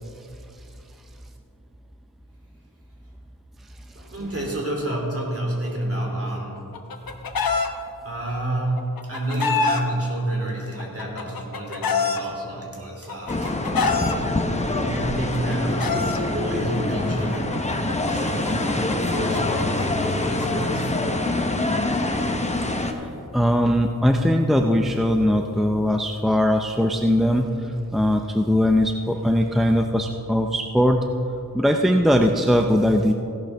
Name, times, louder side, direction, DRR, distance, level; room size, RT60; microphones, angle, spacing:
voice 1, 3.9-6.7 8.0-13.7 14.8-17.7 18.1-20.9, right 1 dB, 40° right, -2 dB, 3.0 m, -29 dB
Chicken rooster, 6.6-7.7 8.8-9.8 10.8-12.2 13.1-14.2 15.2-16.2 17.3-20.7, left 4 dB, 85° left, 0.9 m, -26 dB
sound 1, 13.3-22.9, left 2 dB, 20° left, 0.9 m, -25 dB
voice 2, 23.3-27.5 27.9-31.0 31.5-33.1, equal, ahead, 3 dB, 0.5 m, -20 dB
16.0 x 11.5 x 3.5 m, 2.8 s
wide cardioid pair, 95°, 35 cm